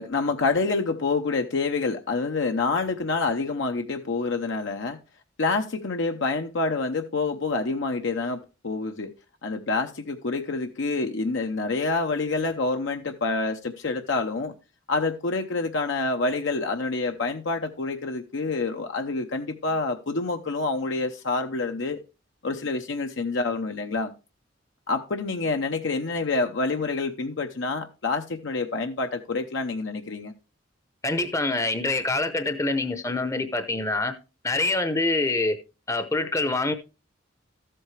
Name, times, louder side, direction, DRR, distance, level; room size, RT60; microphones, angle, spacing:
voice 1, 0.0-5.0 5.4-9.1 9.4-14.5 14.9-22.0 22.4-24.1 24.9-30.3, left 3 dB, 70° left, 0.8 m, -27 dB
voice 2, 31.0-34.1 34.4-35.6 35.9-36.7, left 2 dB, 15° left, 0.7 m, -25 dB
13.5 x 7.8 x 3.2 m
head